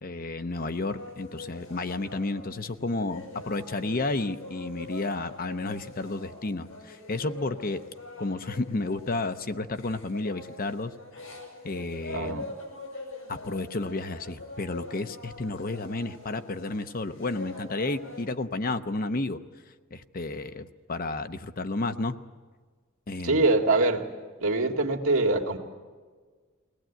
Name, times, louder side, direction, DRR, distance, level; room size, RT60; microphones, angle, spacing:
voice 1, 0.0-7.8 8.2-10.9 11.6-12.4 13.3-19.4 19.9-22.2 23.1-23.4, left 2 dB, 45° left, 10 dB, 0.8 m, -32 dB
sound 1, 0.8-18.2, left 2 dB, 85° left, 6.5 m, -44 dB
voice 2, 12.1-12.5 23.2-24.1 24.4-25.6, right 2 dB, 85° right, 2 dB, 2.1 m, -24 dB
22.0 x 18.5 x 9.1 m, 1.5 s
head